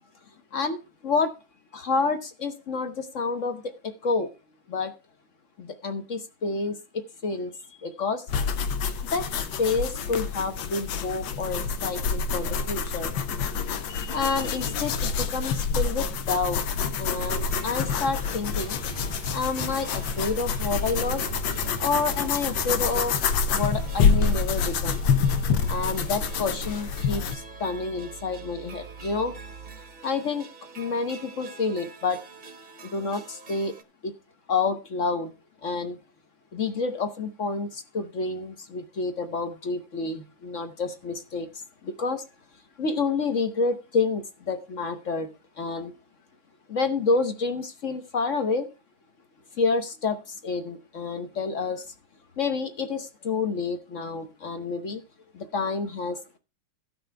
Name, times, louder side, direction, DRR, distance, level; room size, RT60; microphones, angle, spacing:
voice 1, 0.5-1.3 1.7-4.3 4.7-4.9 5.6-7.5 7.8-8.2 9.1-13.2 13.9-16.6 17.0-18.8 19.3-21.3 21.8-23.1 23.5-25.1 25.7-29.3 30.0-30.5 30.8-32.2 32.8-33.7 34.0-34.1 34.5-35.3 35.6-36.0 36.5-41.5 41.8-42.2 42.8-45.3 45.6-45.9 46.7-48.7 49.6-51.8 52.4-55.0 55.3-56.4, left 4 dB, 45° left, 8 dB, 1.2 m, -29 dB
sound 1, 8.3-27.4, left 5 dB, 75° left, 1.7 m, -27 dB
sound 2, 17.2-33.8, right 4 dB, 30° right, 0.9 m, -43 dB
14.5 x 6.0 x 4.5 m, 0.30 s
omnidirectional pair, 2.1 m